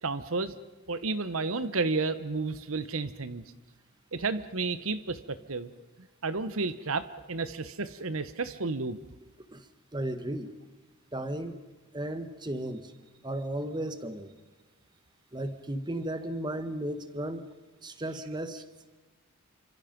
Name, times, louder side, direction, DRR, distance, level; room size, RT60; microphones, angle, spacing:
voice 1, 0.0-0.5 0.9-3.4 4.1-5.7 6.2-9.0, right 3 dB, 65° right, 12 dB, 1.1 m, -31 dB
voice 2, 9.5-10.5 11.1-11.6 11.9-12.9 13.2-14.3 15.3-17.4 17.8-18.6, right 1 dB, 20° right, 10 dB, 1.5 m, -35 dB
29.5 x 26.0 x 5.3 m, 1.2 s
head